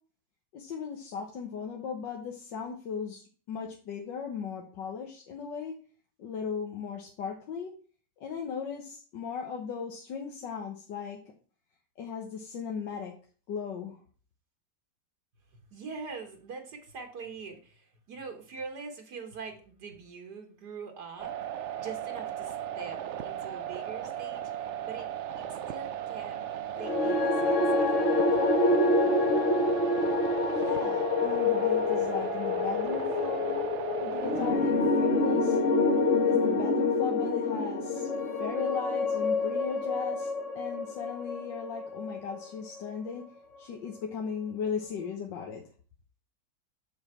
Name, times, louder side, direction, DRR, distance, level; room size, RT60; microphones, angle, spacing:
voice 1, 0.5-5.7 6.2-7.7 8.2-11.2 12.0-13.1 13.5-14.0 30.6-33.7 34.0-35.6 36.2-38.1 38.4-40.3 40.6-43.2 43.6-45.6, left 6 dB, 90° left, 1 dB, 1.8 m, -37 dB
voice 2, 15.7-21.4 21.8-25.1 25.4-26.4 26.7-28.1, right 5 dB, 65° right, 3 dB, 1.9 m, -43 dB
sound 1, 21.2-34.5, right 10 dB, 85° right, 0.6 m, -36 dB
sound 2, 26.8-43.1, left 3 dB, 50° left, 1.3 m, -27 dB
6.9 x 6.4 x 4.3 m, 0.40 s
omnidirectional pair, 1.9 m